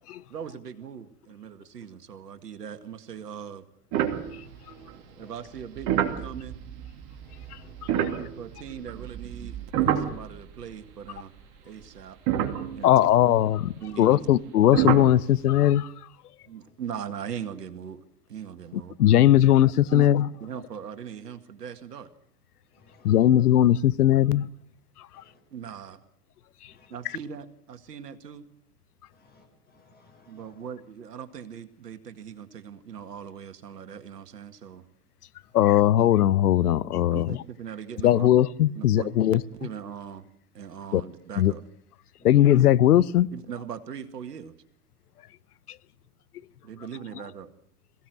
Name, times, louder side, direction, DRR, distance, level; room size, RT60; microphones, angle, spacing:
voice 1, 0.3-3.6 5.2-6.6 8.0-9.6 9.8-11.3 11.6-12.2 12.7-12.9 13.8-14.2 16.5-18.0 18.3-18.9 19.9-22.1 25.5-26.0 26.9-28.4 30.3-34.8 37.1-38.3 38.8-40.3 40.5-41.6 43.3-44.5 46.6-47.5, right 8 dB, 80° right, 2.0 m, -39 dB
sound 1, 3.9-4.9 5.5-10.8 11.1-11.2 11.8-11.9 12.3-13.3 14.7-15.2, right 10 dB, 45° right, 2.8 m, -28 dB
voice 2, 4.3-5.5 7.2-7.9 22.8-23.2 25.1-25.4 26.7-26.9 29.2-30.7 42.2-42.3, left 3 dB, 20° left, 6.9 m, -58 dB
voice 3, 12.8-15.9 18.7-20.3 23.0-24.5 27.0-27.2 35.5-37.4 38.0-39.4 40.9-41.0 41.4-41.5 42.2-43.3, left 12 dB, 70° left, 0.9 m, -19 dB
21.5 x 16.5 x 7.8 m
hypercardioid pair, 105°, 47 cm